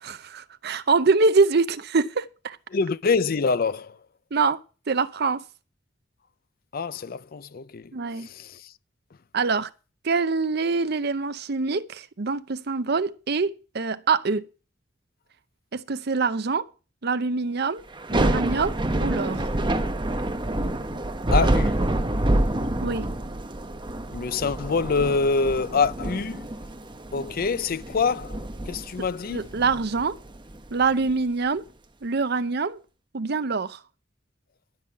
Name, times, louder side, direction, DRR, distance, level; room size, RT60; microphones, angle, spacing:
voice 1, 0.0-2.6 4.3-4.6 4.9-5.4 7.9-8.3 9.3-9.7 10.0-14.5 15.7-16.7 17.0-17.8 18.1-19.5 22.8-23.1 29.0-29.1 29.3-30.2 30.7-31.7 32.0-32.8 33.1-33.8, right 4 dB, 60° right, 0.7 m, -24 dB
voice 2, 2.7-3.9 6.7-7.9 8.3-8.5 21.3-21.8 24.1-26.5 27.1-28.4 28.7-29.4, left 4 dB, 50° left, 0.5 m, -25 dB
Thunder / Rain, 17.9-31.1, right 1 dB, 25° right, 1.2 m, -27 dB
12.0 x 5.5 x 8.4 m
head